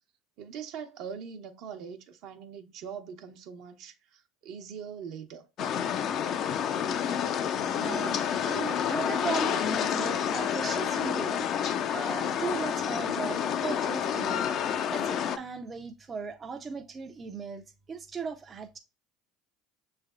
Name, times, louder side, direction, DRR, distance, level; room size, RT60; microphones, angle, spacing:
voice 1, 0.4-5.5, right 7 dB, 65° right, 0.8 m, -42 dB
sound 1, 5.6-15.4, left 8 dB, 50° left, 0.5 m, -29 dB
voice 2, 7.7-14.5 14.9-18.8, right 5 dB, 30° right, 0.5 m, -37 dB
6.4 x 3.3 x 2.3 m
supercardioid pair, 95°, 0 cm